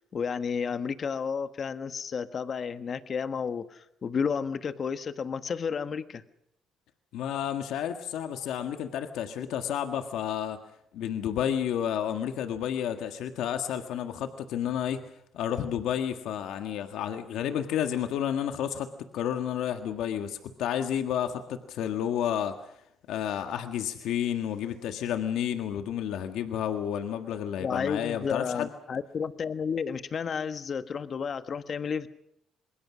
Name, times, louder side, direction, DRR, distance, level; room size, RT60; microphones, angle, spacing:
voice 1, 0.1-6.2 27.6-32.1, left 6 dB, 50° left, 11 dB, 1.3 m, -32 dB
voice 2, 7.1-10.6 10.9-15.0 15.3-18.9 19.1-22.6 23.1-28.7, left 9 dB, 80° left, 7 dB, 1.6 m, -31 dB
27.0 x 21.0 x 6.2 m, 0.77 s
cardioid pair, 80°, 0 cm